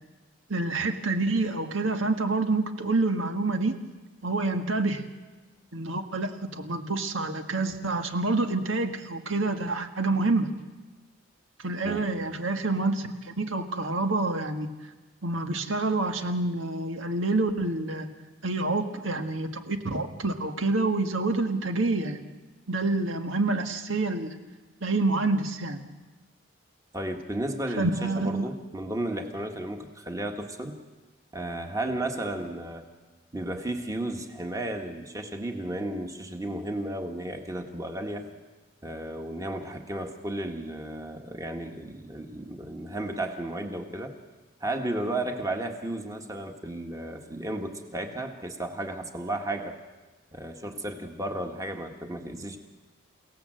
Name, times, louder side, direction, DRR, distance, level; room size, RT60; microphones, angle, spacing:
voice 1, 0.5-3.8 4.2-5.0 5.7-10.5 11.6-14.7 15.2-18.1 18.4-22.2 22.7-24.3 24.8-25.8 27.8-28.5, right 2 dB, 75° right, 6 dB, 1.7 m, -27 dB
voice 2, 26.9-30.8 31.3-32.9 33.3-38.2 38.8-44.1 44.6-49.8 50.3-52.6, right 1 dB, 15° right, 4 dB, 1.7 m, -33 dB
29.0 x 17.5 x 7.8 m, 1.2 s
head